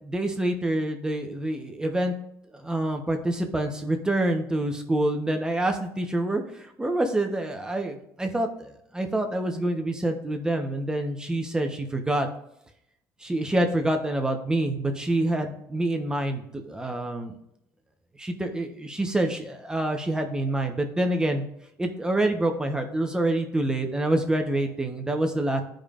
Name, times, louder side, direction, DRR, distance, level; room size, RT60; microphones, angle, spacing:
voice 1, 0.0-2.1 2.5-12.3 13.2-17.3 18.2-21.4 21.8-25.6, right 1 dB, 10° right, 4 dB, 1.0 m, -27 dB
13.5 x 5.1 x 2.5 m, 0.77 s
cardioid pair, 105°, 6 cm